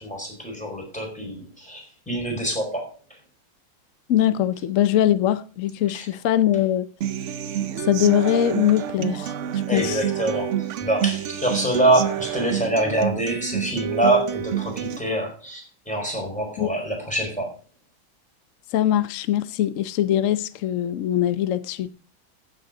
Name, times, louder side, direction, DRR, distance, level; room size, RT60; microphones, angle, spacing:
voice 1, 0.0-2.9 5.9-6.1 9.7-17.5, right 1 dB, 5° left, 4.8 m, -25 dB
voice 2, 4.1-6.9 7.8-10.0 16.6-16.7 18.7-21.9, left 11 dB, 65° left, 0.8 m, -22 dB
Human voice / Acoustic guitar, 7.0-15.0, right 10 dB, 85° right, 0.6 m, -28 dB
14.5 x 6.8 x 5.2 m
omnidirectional pair, 2.1 m